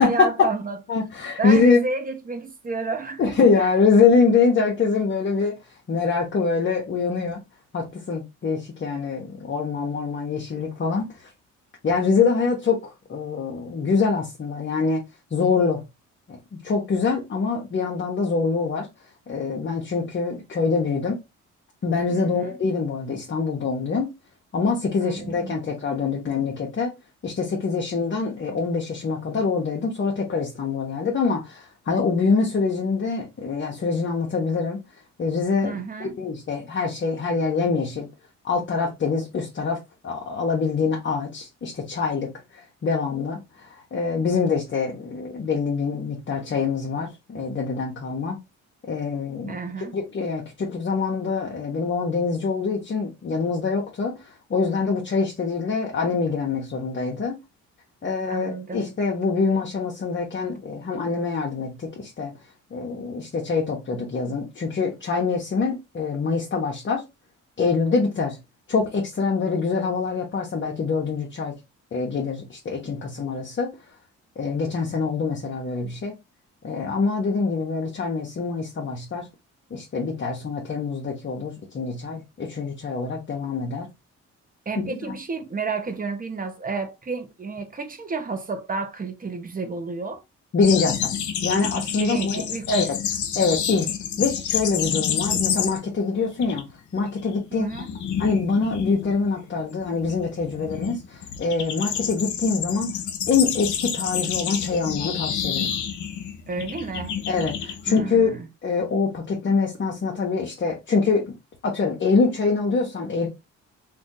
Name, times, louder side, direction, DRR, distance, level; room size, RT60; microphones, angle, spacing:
voice 1, 0.0-0.8 1.4-3.7 22.1-22.6 25.0-25.6 35.6-36.2 49.5-50.0 58.3-58.9 84.7-90.2 92.0-92.9 97.5-97.9 106.5-107.1 107.9-108.5, right 4 dB, 30° right, 0.8 m, -31 dB
voice 2, 0.9-1.8 3.2-5.5 5.9-7.4 7.7-11.1 11.8-12.8 13.1-15.0 15.3-15.8 16.3-18.9 19.3-21.2 21.8-24.1 24.5-26.9 27.2-34.8 35.2-38.1 38.4-48.4 48.9-49.6 49.9-54.1 54.5-57.4 58.0-62.3 62.7-67.0 67.6-68.4 68.7-71.5 71.9-73.7 74.4-76.1 76.6-79.3 79.7-83.9 84.8-85.2 90.5-91.1 91.4-93.0 93.4-93.9 94.2-96.7 96.9-97.7 98.2-102.9 103.3-105.7 107.3-108.3 108.6-111.3 111.6-113.3, left 4 dB, 40° left, 0.9 m, -24 dB
sound 1, 90.6-96.0 96.3-96.6 96.9-108.0, left 8 dB, 70° left, 0.8 m, -29 dB
2.6 x 2.6 x 3.7 m
cardioid pair, 90°, 30 cm